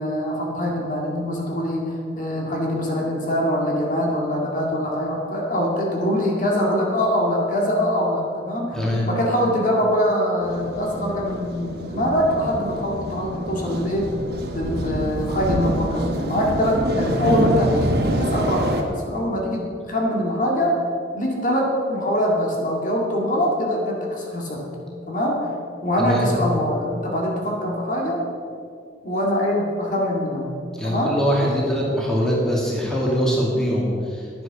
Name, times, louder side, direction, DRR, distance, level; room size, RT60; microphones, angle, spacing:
voice 1, 0.0-8.8 9.1-14.1 14.5-20.8 21.1-24.7 25.1-25.5 25.8-28.2 29.0-30.5 30.8-31.2, equal, 40° left, -2 dB, 2.2 m, -23 dB
voice 2, 8.7-9.1 26.0-26.3 30.8-34.4, equal, 5° left, -4 dB, 2.3 m, -22 dB
sound 1, 10.4-18.8, right 1 dB, 55° right, 1.3 m, -26 dB
11.0 x 9.4 x 6.8 m, 2.4 s
head